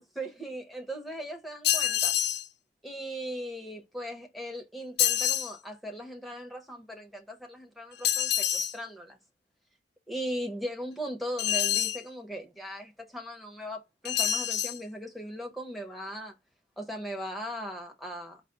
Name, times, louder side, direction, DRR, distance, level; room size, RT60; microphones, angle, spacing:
voice 1, 0.0-2.1 2.8-9.2 10.1-16.3 16.8-18.4, equal, ahead, 0.8 m, -38 dB
sound 1, 1.6-2.5 5.0-5.5 8.0-8.8 11.4-12.0 14.1-14.8, left 11 dB, 60° left, 0.4 m, -26 dB
4.7 x 2.0 x 3.8 m
head